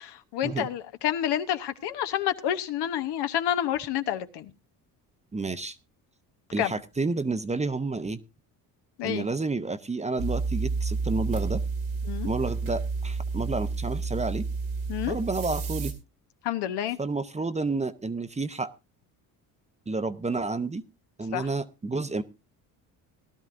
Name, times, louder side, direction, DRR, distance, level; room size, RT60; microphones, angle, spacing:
voice 1, 0.0-4.5 6.6-6.7 9.0-9.2 12.1-12.3 14.9-15.2 16.4-17.0 21.3-21.5, left 11 dB, 65° left, 1.1 m, -29 dB
voice 2, 5.3-5.8 6.5-8.2 9.0-11.6 12.2-14.4 15.1-15.9 17.0-18.7 19.9-20.8 21.2-22.2, right 3 dB, 15° right, 0.8 m, -30 dB
sound 1, 10.2-15.9, right 4 dB, 90° right, 2.5 m, -30 dB
18.5 x 12.0 x 2.6 m
supercardioid pair, 65°, 43 cm